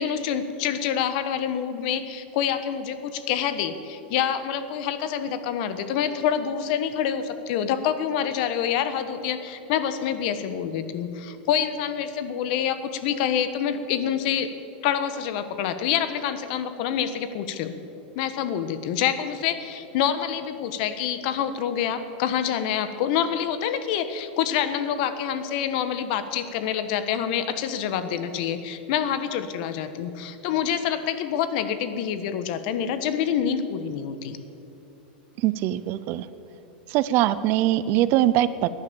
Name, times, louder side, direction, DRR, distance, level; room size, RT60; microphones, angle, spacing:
voice 1, 0.0-14.5 14.8-17.7 18.1-34.4, left 9 dB, 55° left, 11 dB, 1.2 m, -27 dB
voice 2, 35.4-36.3 36.9-38.7, right 14 dB, 40° right, 15 dB, 0.6 m, -22 dB
17.5 x 11.0 x 6.9 m, 2.8 s
supercardioid pair, 145°, 6 cm